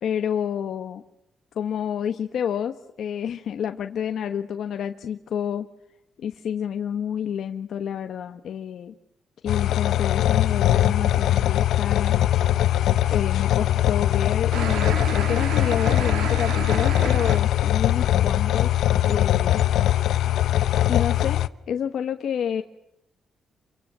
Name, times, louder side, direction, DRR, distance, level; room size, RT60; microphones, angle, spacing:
voice 1, 0.0-1.0 1.5-5.7 6.2-8.9 9.4-12.1 13.1-19.6 20.9-22.6, left 8 dB, 70° left, 7 dB, 1.2 m, -29 dB
sound 1, 9.5-21.5, left 12 dB, 85° left, 0.9 m, -21 dB
sound 2, 14.5-17.4, right 8 dB, 90° right, 2.0 m, -32 dB
28.5 x 24.5 x 7.5 m, 0.85 s
cardioid pair, 135°, 0 cm